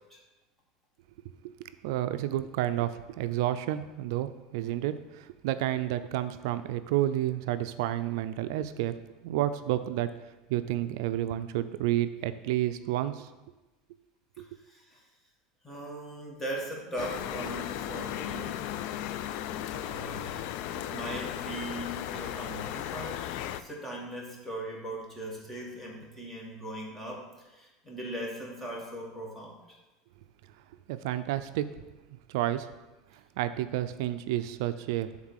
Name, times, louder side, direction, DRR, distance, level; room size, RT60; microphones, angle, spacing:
voice 1, 1.8-8.9 9.2-10.1 10.5-13.3 14.4-14.5 30.9-31.6 32.3-32.7 33.1-35.1, right 13 dB, 80° right, 11 dB, 0.4 m, -30 dB
voice 2, 14.7-15.0 15.6-18.7 19.7-23.2 23.5-29.8, right 1 dB, 10° left, -2 dB, 1.6 m, -39 dB
sound 1, 17.0-23.6, left 12 dB, 65° left, 0.4 m, -36 dB
7.4 x 3.7 x 6.3 m, 1.1 s
supercardioid pair, 135°, 2 cm